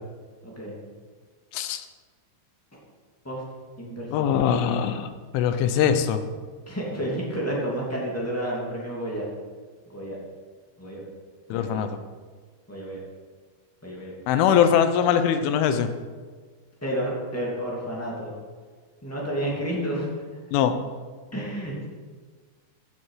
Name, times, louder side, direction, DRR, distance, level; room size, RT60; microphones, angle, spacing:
voice 1, 0.4-0.8 3.2-3.4 3.8-4.4 6.7-9.3 9.9-10.2 10.8-11.0 11.5-11.8 12.7-13.0 13.8-14.1 16.8-18.3 19.0-20.1 21.3-21.9, right 1 dB, 10° left, -4 dB, 0.6 m, -30 dB
voice 2, 1.5-1.8 4.1-5.1 5.3-6.2 11.5-12.0 14.3-15.9 20.5-20.8, left 8 dB, 85° left, 9 dB, 3.3 m, -22 dB
15.0 x 7.9 x 5.7 m, 1.5 s
omnidirectional pair, 5.4 m